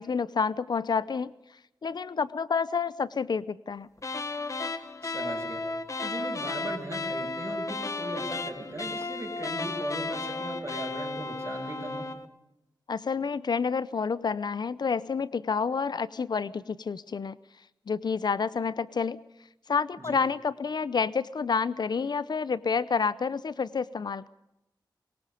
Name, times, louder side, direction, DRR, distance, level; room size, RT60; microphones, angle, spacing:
voice 1, 0.0-1.3 1.8-3.9 12.9-17.3 17.9-19.2 19.7-24.3, left 5 dB, 65° left, 17 dB, 0.7 m, -29 dB
sound 1, 4.0-12.3, left 3 dB, 40° left, 1.4 m, -34 dB
voice 2, 5.0-5.6 6.0-12.1 20.0-20.2, right 2 dB, 35° right, 2 dB, 7.0 m, -38 dB
23.5 x 22.0 x 5.1 m, 0.86 s
wide cardioid pair, 95°, 8 cm